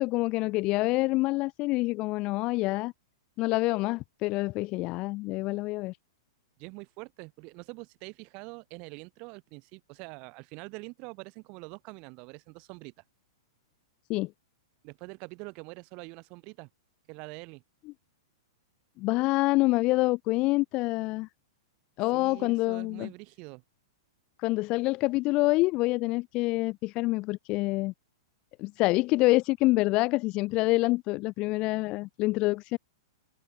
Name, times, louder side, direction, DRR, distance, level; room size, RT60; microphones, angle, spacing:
voice 1, 0.0-2.9 3.4-6.0 14.1-14.3 19.0-21.3 22.0-23.1 24.4-27.9 28.6-32.8, left 21 dB, 35° left, 0.3 m, -26 dB
voice 2, 6.6-12.9 14.8-16.7 17.1-17.6 22.1-23.6, right 29 dB, 40° right, 2.1 m, -44 dB
hypercardioid pair, 125°, 3 cm